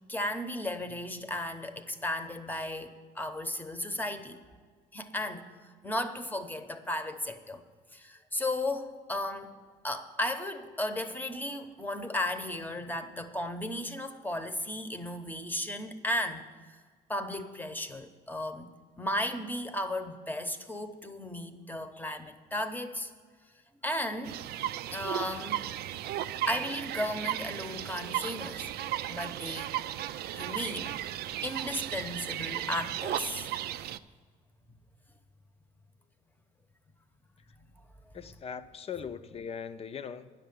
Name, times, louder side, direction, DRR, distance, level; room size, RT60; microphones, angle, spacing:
voice 1, 0.1-4.4 4.9-5.5 5.8-7.6 7.9-9.5 9.8-16.8 17.1-18.7 19.0-23.1 23.8-24.4 24.9-25.7 26.5-28.7 29.1-29.7 30.3-31.0 31.4-33.5, left 1 dB, 10° left, 8 dB, 0.9 m, -35 dB
sound 1, 24.2-34.0, right 12 dB, 70° right, 0.4 m, -35 dB
voice 2, 38.1-40.3, left 7 dB, 35° left, 11 dB, 0.6 m, -40 dB
10.0 x 6.7 x 8.7 m, 1.5 s
cardioid pair, 110°, 17 cm